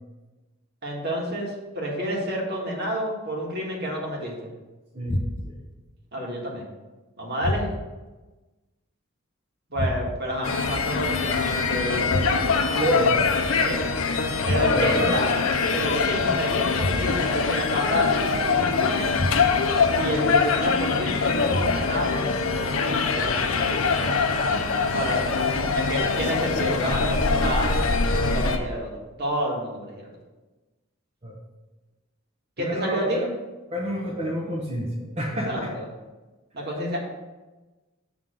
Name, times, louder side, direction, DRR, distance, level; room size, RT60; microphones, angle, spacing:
voice 1, 0.8-4.5 6.1-6.7 7.2-7.7 9.7-12.3 13.6-13.8 14.2-15.4 15.7-19.1 19.9-23.8 24.9-25.2 25.7-27.9 28.1-28.9 29.2-30.1 32.6-33.3 35.5-35.8 36.5-37.0, equal, 50° right, -2 dB, 1.9 m, -29 dB
voice 2, 4.9-5.6 12.7-13.2 14.6-15.2 25.2-25.4 31.2-31.3 32.6-33.3 33.7-35.5, equal, 35° right, -5 dB, 1.0 m, -29 dB
sound 1, 5.1-5.7 7.4-8.0 9.7-10.4 12.1-12.7 14.4-15.1 16.8-17.4 19.1-19.8 21.5-22.1, left 1 dB, 40° left, 0.6 m, -29 dB
sound 2, 10.4-28.6, left 4 dB, 75° left, 0.7 m, -23 dB
7.2 x 3.7 x 6.4 m, 1.2 s
head